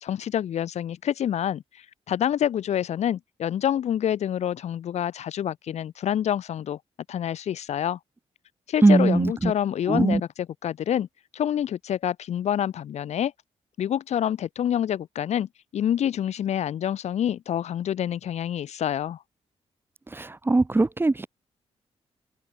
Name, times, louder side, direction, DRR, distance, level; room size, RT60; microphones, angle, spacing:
voice 1, 0.0-1.6 2.1-6.8 7.1-8.0 8.7-10.3 10.6-11.1 11.3-13.3 13.8-19.2, left 10 dB, 75° left, 1.3 m, -27 dB
voice 2, 8.8-9.5 9.9-10.2 20.1-21.3, right 2 dB, 20° right, 1.9 m, -20 dB
cardioid pair, 110°, 11 cm